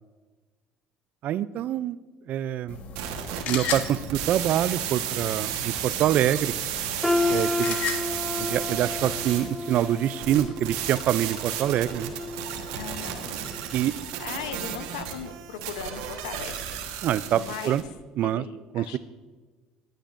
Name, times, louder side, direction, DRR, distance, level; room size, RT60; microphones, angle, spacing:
voice 1, 1.2-2.0 2.3-2.8 3.4-6.6 7.3-7.8 8.4-12.1 13.7-13.9 17.0-17.8 18.2-18.4 18.7-19.0, right 11 dB, 60° right, 17 dB, 0.4 m, -25 dB
sound 1, 2.7-9.5, left 6 dB, 65° left, 1.4 m, -37 dB
sound 2, 3.0-17.8, right 9 dB, 80° right, 1.3 m, -33 dB
sound 3, 7.0-13.0 13.4-13.6 14.3-14.4, left 2 dB, 10° left, 0.7 m, -31 dB
voice 2, 12.7-13.4 14.2-16.6 17.3-17.8 18.2-19.0, left 9 dB, 85° left, 10 dB, 0.8 m, -38 dB
19.0 x 8.9 x 2.6 m, 1.3 s
hypercardioid pair, 70°, 3 cm